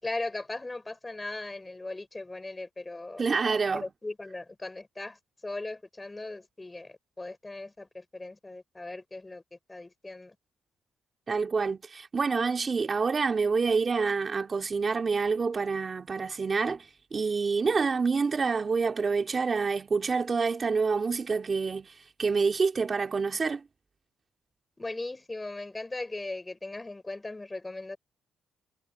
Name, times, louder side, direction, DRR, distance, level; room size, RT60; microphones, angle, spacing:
voice 1, 0.0-3.2 3.7-10.4 24.8-28.0, left 2 dB, 15° left, 5.8 m, -38 dB
voice 2, 3.2-3.9 11.3-21.9 22.2-23.6, right 4 dB, 35° right, 2.6 m, -27 dB
cardioid pair, 90°, 0 cm